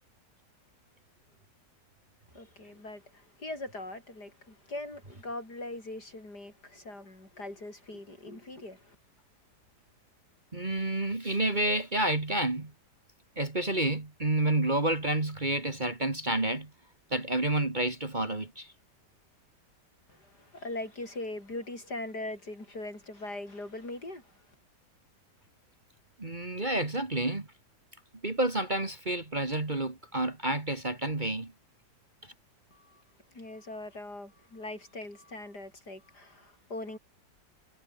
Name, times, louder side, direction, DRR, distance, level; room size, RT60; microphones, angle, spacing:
voice 1, 2.3-8.9 20.1-24.4 32.7-33.0 33.3-37.0, left 2 dB, 65° left, 8.7 m, -41 dB
voice 2, 10.5-12.7 13.4-16.7 17.1-18.7 26.2-27.5 28.2-31.5, right 1 dB, 25° right, 2.3 m, -29 dB
omnidirectional pair, 1.9 m